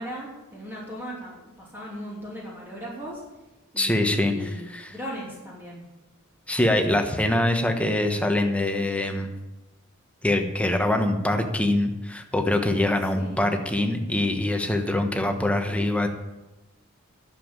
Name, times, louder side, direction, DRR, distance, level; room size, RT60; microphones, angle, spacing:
voice 1, 0.0-3.2 3.7-5.9 13.1-13.6, equal, 10° right, -5 dB, 3.1 m, -38 dB
voice 2, 3.8-4.9 6.5-9.3 10.2-16.1, left 1 dB, 5° left, 4 dB, 1.2 m, -24 dB
11.5 x 7.5 x 8.9 m, 1.0 s
head